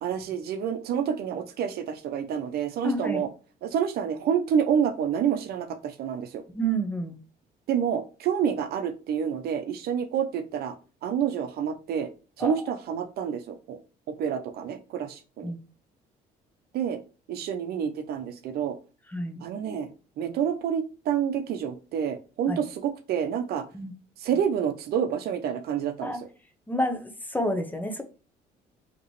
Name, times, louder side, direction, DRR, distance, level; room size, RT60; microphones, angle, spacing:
voice 1, 0.0-3.3 3.6-6.4 7.7-10.7 11.0-12.1 12.4-13.8 14.1-15.5 16.7-17.0 17.3-18.8 19.4-19.9 20.2-23.6 24.2-26.1, right 8 dB, 70° right, 9 dB, 0.7 m, -28 dB
voice 2, 2.8-3.3 6.5-7.2 12.4-12.5 15.4-15.6 19.1-19.4 22.5-22.6 23.7-23.9 26.0-26.2 26.7-28.0, right 1 dB, 10° left, 6 dB, 0.8 m, -29 dB
5.2 x 3.0 x 3.1 m, 0.34 s
cardioid pair, 110°, 17 cm